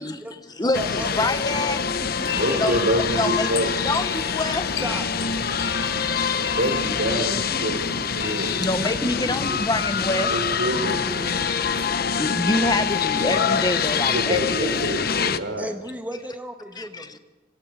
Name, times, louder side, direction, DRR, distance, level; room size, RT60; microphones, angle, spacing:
voice 1, 0.0-1.6 2.0-2.8 4.8-5.1 8.8-9.6 10.8-11.7 13.8-13.9 15.6-17.2, equal, 10° right, 4 dB, 1.6 m, -35 dB
voice 2, 0.6-1.9 2.6-2.8 3.2-4.7 5.5-5.6 8.6-10.3 11.5-11.6 12.2-14.8 16.8-17.1, left 2 dB, 20° left, 9 dB, 1.1 m, -26 dB
sound 1, 0.7-15.4, left 6 dB, 55° left, 0.9 m, -25 dB
sound 2, 2.1-9.0, left 6 dB, 80° left, 0.9 m, -35 dB
voice 3, 2.3-3.7 6.3-8.8 10.3-11.3 14.0-15.7, right 1 dB, 75° right, 5 dB, 4.6 m, -27 dB
26.5 x 25.5 x 4.9 m, 1.3 s
head